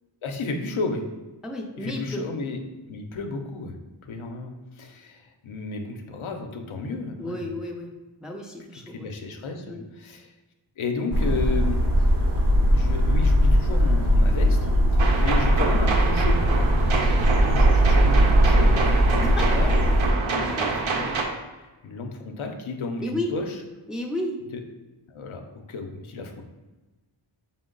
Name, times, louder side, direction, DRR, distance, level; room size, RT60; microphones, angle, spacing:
voice 1, 0.2-1.0 1.8-2.6 2.9-3.8 4.0-7.6 8.7-10.3 10.8-11.8 12.7-16.4 17.3-19.8 20.2-21.0 21.8-23.6 24.5-24.6 25.1-26.4, left 3 dB, 85° left, 3 dB, 0.6 m, -33 dB
voice 2, 1.4-2.2 7.2-7.9 8.2-9.1 9.7-9.9 19.4-19.5 20.4-20.7 23.0-23.3 23.9-24.4, left 1 dB, ahead, 0 dB, 0.4 m, -32 dB
sound 1, 11.1-20.1, equal, 45° right, 0.7 m, -19 dB
sound 2, 15.0-21.2, right 3 dB, 80° right, 0.7 m, -27 dB
4.4 x 2.0 x 3.7 m, 1.2 s
wide cardioid pair, 75°, 47 cm